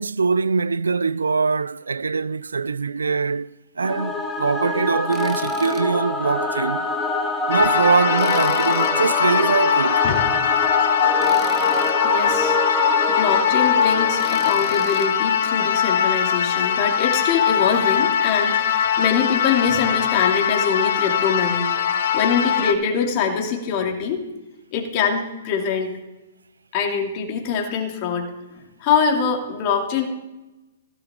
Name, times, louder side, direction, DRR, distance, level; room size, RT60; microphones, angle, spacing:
voice 1, 0.0-6.9 7.5-10.0, right 4 dB, 85° right, 0.3 m, -22 dB
Singing / Musical instrument, 3.8-15.1, left 2 dB, 5° left, 2.0 m, -26 dB
Tools, 5.1-5.9 6.3-6.4 8.2-9.2 11.2-12.0 14.2-15.1, right 5 dB, 20° right, 1.4 m, -39 dB
sound 1, 7.5-22.7, left 8 dB, 60° left, 1.2 m, -21 dB
voice 2, 12.0-12.6 13.1-21.7 22.1-24.2 24.7-25.9 26.7-28.3 28.8-30.0, left 6 dB, 40° left, 2.9 m, -23 dB
16.5 x 11.0 x 3.8 m
hypercardioid pair, 125°, 0 cm